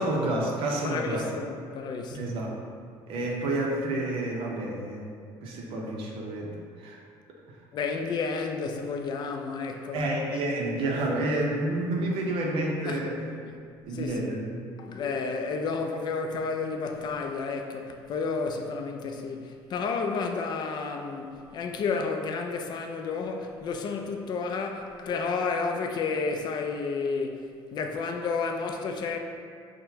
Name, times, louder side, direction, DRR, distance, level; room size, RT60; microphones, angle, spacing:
voice 1, 0.0-1.3 2.1-2.6 3.1-5.2 5.4-6.5 6.8-7.0 9.9-13.3 13.8-14.6, right 1 dB, 65° right, 0.7 m, -29 dB
voice 2, 0.8-2.3 7.7-10.4 11.0-11.2 12.8-13.1 13.5-13.6 13.9-14.4 14.8-27.4 27.7-29.2, left 4 dB, 45° left, 0.4 m, -31 dB
6.1 x 2.1 x 2.8 m
cardioid pair, 105°, 10 cm